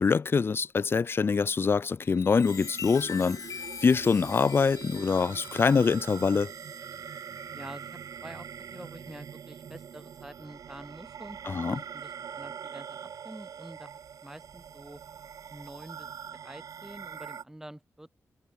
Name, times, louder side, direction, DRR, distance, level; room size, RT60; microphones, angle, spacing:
voice 1, 0.0-3.5 3.8-6.5 11.5-11.8, left 5 dB, 40° left, 1.0 m, -24 dB
Chime, 2.0-7.9 8.5-8.8, left 7 dB, 70° left, 2.8 m, -44 dB
sound 1, 2.5-17.4, right 7 dB, 75° right, 4.0 m, -43 dB
voice 2, 7.5-7.9 8.2-15.0 15.5-16.1 16.4-18.1, right 1 dB, 5° right, 2.0 m, -47 dB
wide cardioid pair, 145°, 6 cm